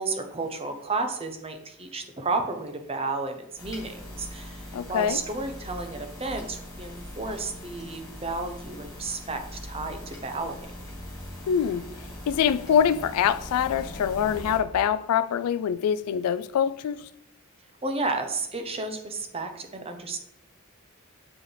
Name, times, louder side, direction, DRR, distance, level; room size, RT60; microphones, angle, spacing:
voice 1, 0.0-10.5 17.8-20.2, right 3 dB, 25° right, 0.7 m, -32 dB
sound 1, 3.6-14.6, left 1 dB, 15° left, 1.4 m, -41 dB
voice 2, 4.7-5.2 11.5-11.8 12.3-17.1, left 8 dB, 85° left, 0.3 m, -24 dB
7.5 x 4.7 x 3.3 m
head